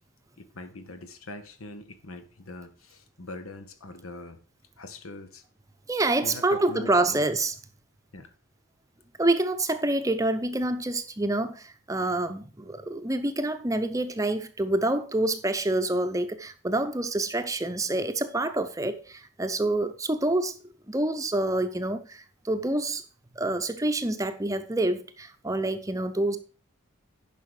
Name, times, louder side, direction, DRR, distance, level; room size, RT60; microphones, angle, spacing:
voice 1, 0.4-4.4 4.8-5.4 6.2-7.2 8.1-8.3, left 2 dB, 90° left, 1.3 m, -42 dB
voice 2, 5.9-7.5 9.2-20.6 20.9-23.0 23.4-26.4, right 2 dB, 15° right, 0.7 m, -27 dB
10.5 x 5.6 x 4.9 m
head